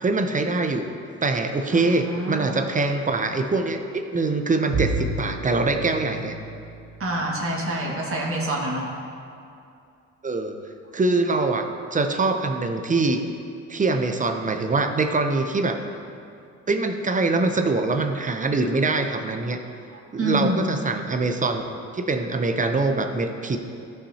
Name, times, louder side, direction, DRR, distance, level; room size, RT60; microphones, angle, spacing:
voice 1, 0.0-0.9 1.2-6.4 10.2-10.6 10.9-13.2 13.7-15.8 16.7-19.6 20.1-23.6, right 3 dB, 25° right, 6 dB, 0.7 m, -24 dB
voice 2, 1.7-2.6 7.0-8.9 20.2-20.7, right 1 dB, 45° right, -3 dB, 1.9 m, -27 dB
Bowed string instrument, 4.7-7.8, right 3 dB, 65° right, 1.2 m, -31 dB
13.5 x 5.7 x 2.8 m, 2.5 s
cardioid pair, 90°, 30 cm